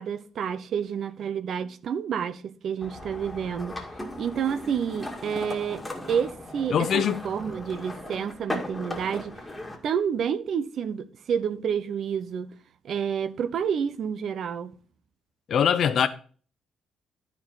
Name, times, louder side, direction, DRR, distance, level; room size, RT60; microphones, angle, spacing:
voice 1, 0.0-3.8 4.2-9.4 9.8-12.5 12.8-14.7, right 7 dB, 65° right, 0.7 m, -29 dB
sound 1, 2.8-9.8, left 1 dB, 10° left, 2.0 m, -37 dB
voice 2, 6.7-7.2 15.5-16.1, left 8 dB, 65° left, 0.8 m, -22 dB
13.0 x 4.6 x 4.0 m
cardioid pair, 90°, 0 cm